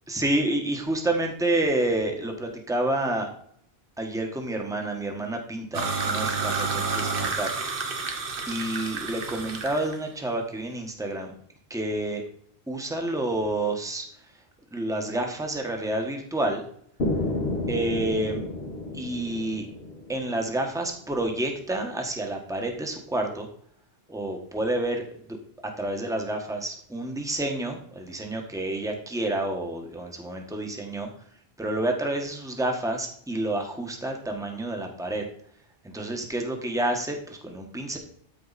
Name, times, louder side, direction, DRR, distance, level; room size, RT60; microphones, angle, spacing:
voice 1, 0.1-3.3 4.0-7.5 8.5-11.3 11.7-12.2 12.7-14.0 14.7-16.6 17.7-18.4 18.9-19.7 20.1-23.5 24.1-25.0 25.3-25.4 25.8-31.1 31.6-35.2 35.8-38.0, right 1 dB, 5° right, 3 dB, 1.3 m, -29 dB
sound 1, 5.7-9.9, right 4 dB, 60° right, 1.2 m, -29 dB
sound 2, 17.0-20.9, left 2 dB, 75° left, 1.9 m, -31 dB
13.0 x 4.7 x 4.1 m, 0.63 s
omnidirectional pair, 1.0 m